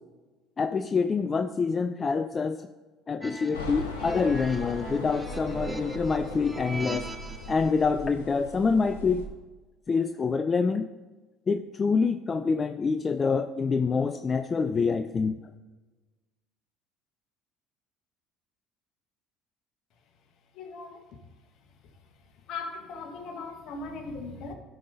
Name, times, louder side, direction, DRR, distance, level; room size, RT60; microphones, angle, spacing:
voice 1, 0.6-2.7 3.1-7.1 7.5-9.2 9.9-10.9 11.5-15.4, left 5 dB, 35° left, 9 dB, 0.4 m, -26 dB
sound 1, 3.2-7.7, right 2 dB, 10° right, 1.0 m, -40 dB
sound 2, 3.5-9.3, left 1 dB, 90° left, 1.0 m, -39 dB
voice 2, 20.5-21.0 22.5-24.5, left 3 dB, 60° left, 5 dB, 1.4 m, -38 dB
13.5 x 5.5 x 4.0 m, 1.2 s
hypercardioid pair, 65°, 0 cm